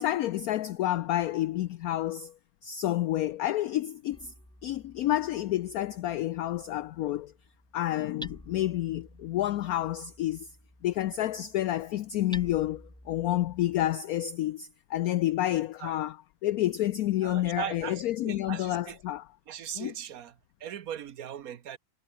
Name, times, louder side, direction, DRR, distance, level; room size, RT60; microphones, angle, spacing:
voice 1, 0.0-2.3 2.6-4.3 4.6-7.3 7.7-10.5 10.8-19.3 19.7-19.9, left 13 dB, 70° left, 0.9 m, -29 dB
Hammer, 4.1-13.9, equal, ahead, 5.1 m, -51 dB
voice 2, 17.2-19.0 19.5-20.3 20.6-21.8, right 9 dB, 60° right, 1.2 m, -39 dB
omnidirectional pair, 2.0 m